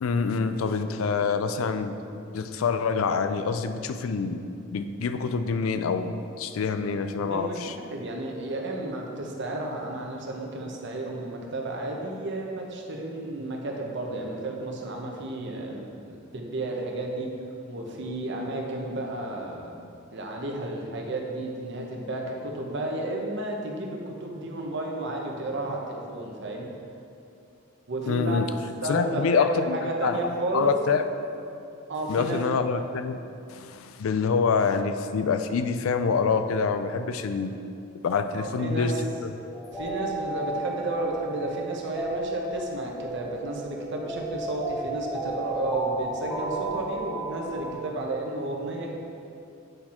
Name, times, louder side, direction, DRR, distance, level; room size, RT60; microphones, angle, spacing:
voice 1, 0.0-2.0 2.3-4.4 4.7-7.7 28.1-28.5 28.9-30.2 30.5-31.0 32.1-33.2 33.5-37.5 38.0-38.9 39.2-39.3, left 5 dB, 80° left, 9 dB, 0.4 m, -26 dB
voice 2, 7.9-17.3 17.7-19.8 20.1-25.8 26.1-26.7 27.9-28.4 28.8-30.7 31.9-32.4 38.3-39.0 39.7-48.9, right 2 dB, 60° right, 0 dB, 0.9 m, -32 dB
sound 1, 39.5-47.7, right 2 dB, 5° left, 0.9 m, -33 dB
7.9 x 4.3 x 4.3 m, 2.6 s
head